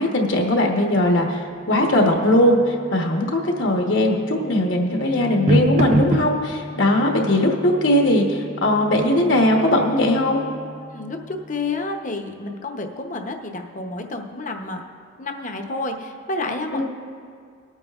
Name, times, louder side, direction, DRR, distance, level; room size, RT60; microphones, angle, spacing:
voice 1, 0.0-10.4 16.7-16.8, left 1 dB, 65° left, 1 dB, 1.1 m, -19 dB
sound 1, 0.9-11.7, equal, 35° right, 0.6 m, -29 dB
voice 2, 10.9-14.8 15.2-16.8, left 2 dB, 40° left, 4 dB, 0.8 m, -30 dB
23.5 x 8.8 x 2.4 m, 2.2 s
head